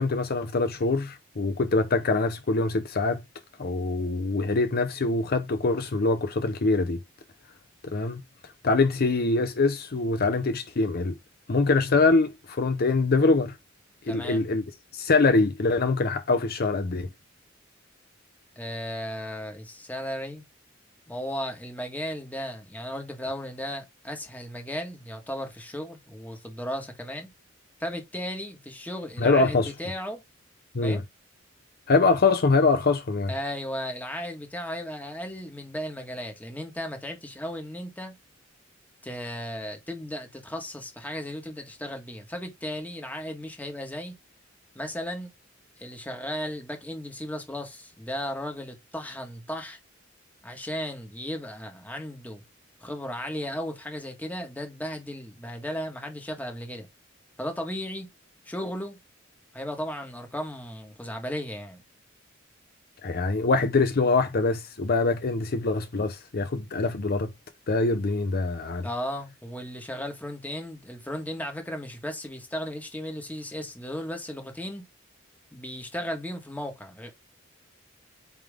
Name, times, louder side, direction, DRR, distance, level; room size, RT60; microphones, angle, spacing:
voice 1, 0.0-3.2 3.6-7.0 7.8-8.2 8.6-11.2 11.5-13.6 14.1-14.6 14.9-17.1 29.2-29.7 30.7-31.0 31.9-33.3 63.0-67.3 67.7-68.9, left 3 dB, 50° left, 0.7 m, -24 dB
voice 2, 14.1-14.4 18.5-20.4 21.1-27.3 27.8-30.2 30.8-31.0 33.3-38.2 39.0-44.1 44.7-45.3 45.8-49.8 50.4-52.4 52.8-56.9 57.4-58.1 58.4-59.0 59.5-61.8 68.8-74.9 75.5-77.1, equal, 10° left, 1.6 m, -35 dB
8.6 x 3.4 x 3.6 m
head